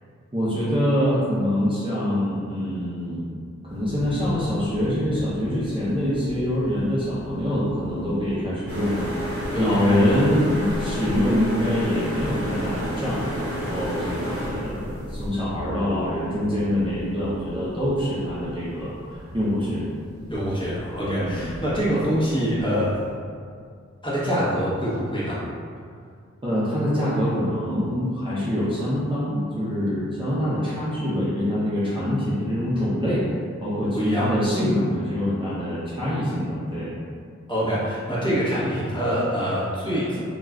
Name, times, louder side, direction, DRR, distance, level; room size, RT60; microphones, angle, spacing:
voice 1, 0.3-3.2 3.6-19.9 21.0-21.5 26.4-33.2 33.6-36.9, equal, 20° right, -11 dB, 0.6 m, -25 dB
sound 1, 3.7-23.1, left 1 dB, 35° left, 1.2 m, -42 dB
sound 2, 8.7-15.3, equal, 50° right, 0.9 m, -30 dB
voice 2, 9.5-10.3 20.3-23.0 24.0-25.4 33.9-34.3 37.5-40.2, equal, 15° left, -10 dB, 0.9 m, -25 dB
2.4 x 2.3 x 3.2 m, 2.2 s
wide cardioid pair, 75°, 29 cm